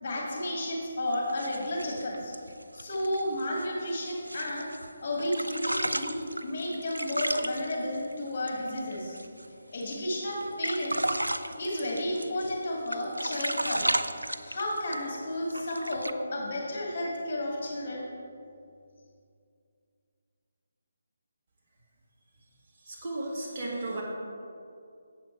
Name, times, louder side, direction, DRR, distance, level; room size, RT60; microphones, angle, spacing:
voice 1, 0.0-2.3 2.7-4.7 5.0-9.2 9.7-11.0 11.6-13.9 14.5-18.1, left 1 dB, 45° left, -3 dB, 2.2 m, -32 dB
sound 1, 1.1-4.9 5.2-9.5 9.8-9.9 10.3-12.6 12.9-15.2 15.5-16.1, right 1 dB, 90° right, 0.4 m, -34 dB
voice 2, 22.8-24.0, right 2 dB, 35° right, -5 dB, 2.0 m, -34 dB
7.9 x 7.4 x 4.5 m, 2.4 s
figure-of-eight pair, 150°, 0 cm